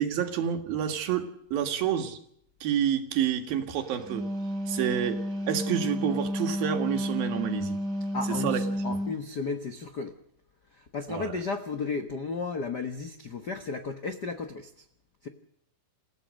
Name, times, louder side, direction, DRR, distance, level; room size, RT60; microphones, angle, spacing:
voice 1, 0.0-2.2 2.6-4.3 4.7-7.8 8.3-8.6 11.1-11.4, right 9 dB, 75° right, 6 dB, 3.7 m, -29 dB
Wind instrument woodwind instrument, 3.9-9.2, equal, 30° right, 3.4 m, -31 dB
voice 2, 8.1-10.1 10.8-14.8 15.2-15.3, left 4 dB, 70° left, 7 dB, 0.9 m, -34 dB
28.5 x 16.0 x 6.5 m, 0.72 s
omnidirectional pair, 4.2 m